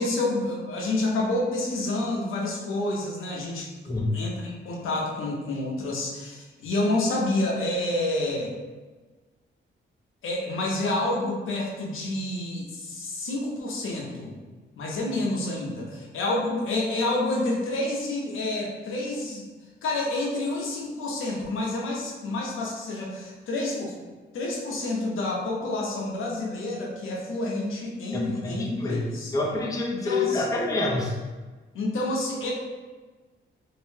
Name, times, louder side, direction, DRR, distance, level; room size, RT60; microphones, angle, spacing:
voice 1, 0.0-3.7 4.1-8.5 10.2-14.3 14.8-19.4 19.8-23.9 24.3-29.3 30.0-30.4 31.7-32.5, left 2 dB, 80° left, -2 dB, 0.6 m, -28 dB
voice 2, 28.1-29.0 29.3-31.2, left 2 dB, 15° left, -2 dB, 0.5 m, -27 dB
2.6 x 2.0 x 3.1 m, 1.3 s
cardioid pair, 120°, 20 cm